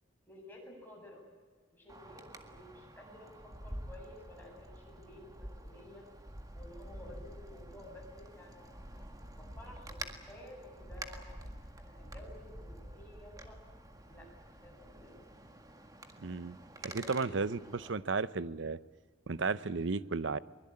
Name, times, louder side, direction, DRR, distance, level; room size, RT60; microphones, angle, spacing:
voice 1, 0.3-1.2 1.7-6.0 6.5-11.4 11.8-13.6 14.1-14.3 14.6-15.1 16.8-17.5 17.8-18.0, left 1 dB, 10° left, -2 dB, 8.0 m, -53 dB
Wind, 1.9-17.9, right 1 dB, 20° right, 1.8 m, -48 dB
voice 2, 16.2-16.6 16.9-17.6 17.9-18.8 19.3-20.4, right 4 dB, 70° right, 16 dB, 0.8 m, -33 dB
23.0 x 21.5 x 8.8 m, 1.4 s
head